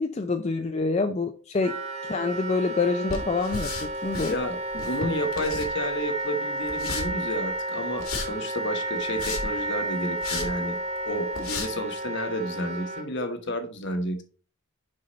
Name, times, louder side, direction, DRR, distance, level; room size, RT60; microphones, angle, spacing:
voice 1, 0.0-1.7 2.0-4.3, left 3 dB, 30° left, 7 dB, 0.4 m, -27 dB
Wind instrument woodwind instrument, 1.6-13.0, right 1 dB, 30° right, 0.9 m, -32 dB
footsteps parquet, 3.1-4.4 4.7-6.0 6.7-7.1 8.0-8.3 9.0-9.6 10.2-10.5 11.0-11.1 11.3-11.7, left 3 dB, 80° left, 2.1 m, -33 dB
voice 2, 4.3-10.8 11.0-14.2, equal, 55° left, 7 dB, 1.2 m, -31 dB
6.5 x 5.5 x 4.0 m, 0.39 s
head